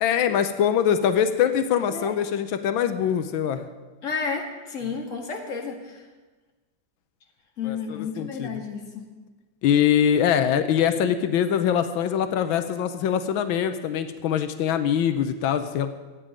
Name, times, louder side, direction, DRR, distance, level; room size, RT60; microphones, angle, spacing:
voice 1, 0.0-3.7 7.6-8.6 9.6-15.9, left 9 dB, 90° left, 9 dB, 1.5 m, -23 dB
voice 2, 4.0-6.1 7.6-9.1, left 5 dB, 40° left, 1 dB, 2.2 m, -32 dB
24.0 x 9.1 x 5.1 m, 1.3 s
omnidirectional pair, 2.1 m